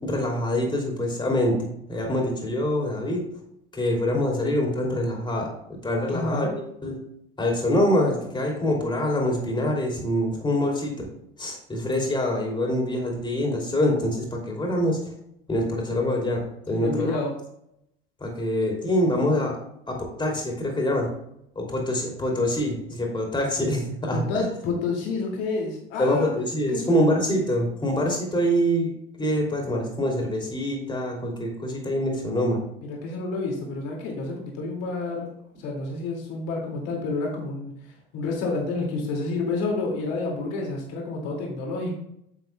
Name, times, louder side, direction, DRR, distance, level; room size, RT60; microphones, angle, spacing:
voice 1, 0.0-3.2 3.7-5.5 5.8-6.5 6.8-7.0 7.4-11.1 11.4-15.0 15.5-17.2 18.2-19.5 19.9-21.1 21.5-24.5 26.0-28.9 29.2-32.6, left 1 dB, 15° left, 0 dB, 2.7 m, -25 dB
voice 2, 6.1-6.5 16.7-17.4 24.1-26.3 26.7-27.4 32.8-35.3 35.6-37.7 38.1-41.9, left 3 dB, 55° left, -1 dB, 2.3 m, -29 dB
9.2 x 7.8 x 2.2 m, 0.77 s
figure-of-eight pair, 70°, 30 cm